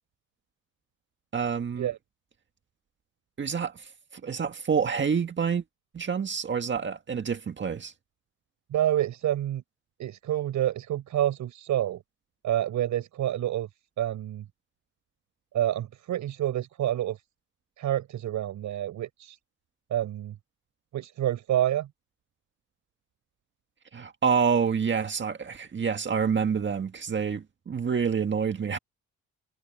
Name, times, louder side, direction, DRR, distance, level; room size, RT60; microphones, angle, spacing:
voice 1, 1.3-1.9 3.4-3.9 4.2-5.6 5.9-7.9 23.9-28.8, right 6 dB, 40° right, 1.8 m, -27 dB
voice 2, 8.7-9.6 10.0-12.0 12.4-13.7 14.0-14.4 15.5-17.2 17.8-19.4 19.9-20.3 20.9-21.9, right 12 dB, 75° right, 7.0 m, -28 dB
cardioid pair, 90°, 30 cm